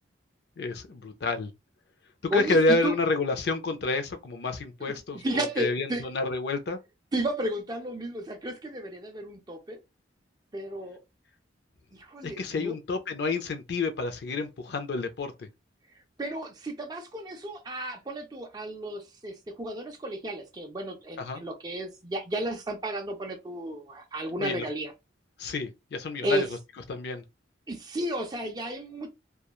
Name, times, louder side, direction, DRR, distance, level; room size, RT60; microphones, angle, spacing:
voice 1, 0.6-1.5 2.3-6.8 12.2-15.5 21.2-21.4 24.4-24.6 25.4-26.5 26.9-27.2, left 3 dB, 60° left, 0.4 m, -29 dB
voice 2, 2.3-2.9 4.8-6.0 7.1-9.8 10.5-11.0 11.9-12.7 16.2-24.9 26.2-26.5 27.7-29.1, right 1 dB, 20° right, 0.4 m, -33 dB
2.9 x 2.2 x 2.3 m
head